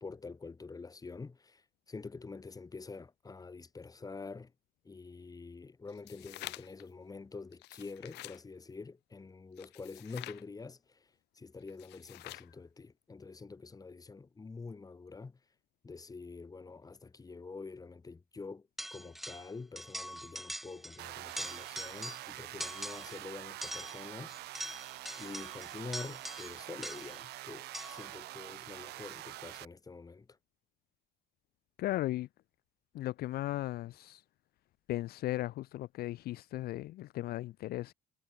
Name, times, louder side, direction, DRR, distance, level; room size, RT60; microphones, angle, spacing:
voice 1, 0.0-4.5 4.8-11.1 11.3-15.4 15.8-24.3 25.2-30.3, left 4 dB, 20° left, 2.5 m, -46 dB
sound 1, 5.9-6.8 7.5-8.4 9.6-10.4 11.7-12.5, left 19 dB, 85° left, 1.4 m, -47 dB
sound 2, 18.8-19.5 19.8-21.0 21.3-22.3 22.6-23.2 23.6-27.2 27.7-28.1, equal, ahead, 1.5 m, -43 dB
sound 3, 21.0-29.6, right 18 dB, 75° right, 0.6 m, -46 dB
voice 2, 31.8-32.3 32.9-34.2 34.9-37.9, left 16 dB, 65° left, 0.5 m, -36 dB
cardioid pair, 110°, 17 cm